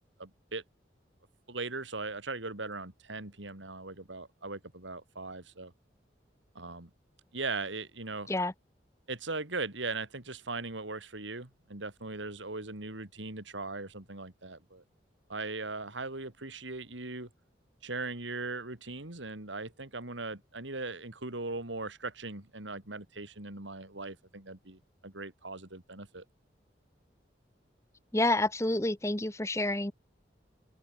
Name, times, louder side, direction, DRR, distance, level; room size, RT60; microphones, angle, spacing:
voice 1, 0.2-0.6 1.5-5.7 6.6-6.9 7.3-8.3 9.1-14.8 15.3-17.3 17.8-26.2, right 3 dB, 90° right, 3.6 m, -39 dB
voice 2, 28.1-29.9, left 2 dB, 15° left, 1.2 m, -28 dB
open air
head